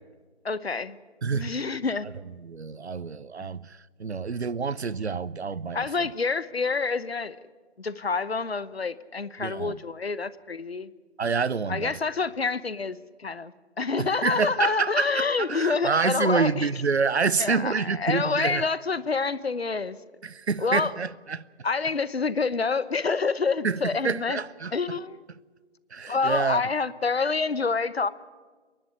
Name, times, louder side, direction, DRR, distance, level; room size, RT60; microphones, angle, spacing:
voice 1, 0.4-1.0 1.3-2.1 3.4-3.5 5.7-7.4 7.8-10.9 11.7-16.7 17.4-20.0 20.6-20.9 21.6-24.4 24.7-25.2 26.1-28.1, left 4 dB, 60° left, 1.0 m, -27 dB
voice 2, 1.2-1.6 2.4-6.1 9.4-9.8 11.2-12.0 14.0-18.7 20.2-21.4 23.6-24.7 25.9-26.6, right 5 dB, 65° right, 0.7 m, -28 dB
30.0 x 11.5 x 9.9 m
figure-of-eight pair, 150°, 35 cm